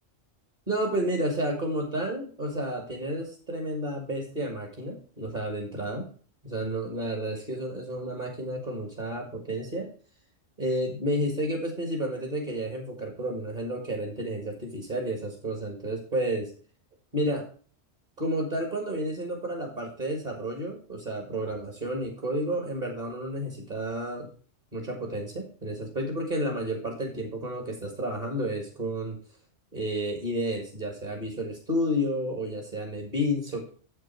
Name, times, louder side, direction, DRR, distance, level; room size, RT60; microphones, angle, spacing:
voice 1, 0.7-6.1 6.4-9.9 10.6-16.5 17.1-17.5 18.2-24.3 24.7-29.2 29.7-33.7, equal, 35° right, 1 dB, 1.8 m, -31 dB
7.7 x 6.6 x 4.4 m, 0.41 s
omnidirectional pair, 1.3 m